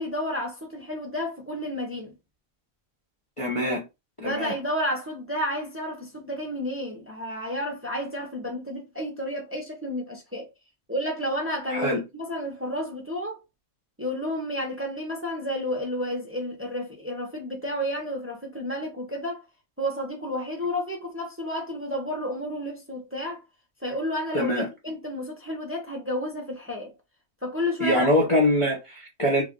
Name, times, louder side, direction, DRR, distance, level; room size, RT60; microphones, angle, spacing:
voice 1, 0.0-2.1 4.2-10.5 10.9-13.4 14.0-19.4 19.8-23.4 23.8-24.5 24.8-26.9 27.4-28.1, left 1 dB, 10° right, 0.7 m, -31 dB
voice 2, 3.4-3.8 4.2-4.5 11.7-12.0 24.3-24.7 27.8-29.4, equal, 30° left, 0.7 m, -23 dB
3.2 x 2.5 x 3.7 m
omnidirectional pair, 1.4 m